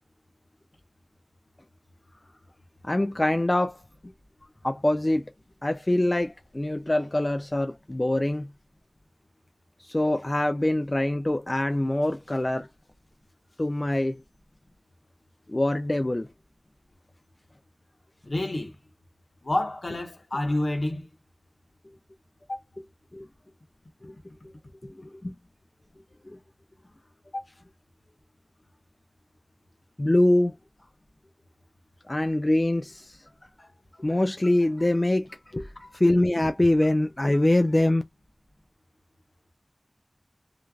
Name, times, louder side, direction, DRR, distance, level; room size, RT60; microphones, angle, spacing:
voice 1, 2.8-3.8 4.6-5.2 5.6-8.5 9.9-12.7 13.6-14.2 15.5-16.3 23.1-23.3 24.0-24.1 24.8-24.9 25.2-25.3 30.0-30.5 32.1-33.2 33.6-33.7 34.0-38.0, left 1 dB, 40° left, 0.4 m, -24 dB
voice 2, 18.2-18.7 19.4-21.1 22.5-22.6 27.3-27.4, left 1 dB, 75° left, 1.0 m, -28 dB
3.2 x 2.4 x 2.2 m
wide cardioid pair, 40°, 0 cm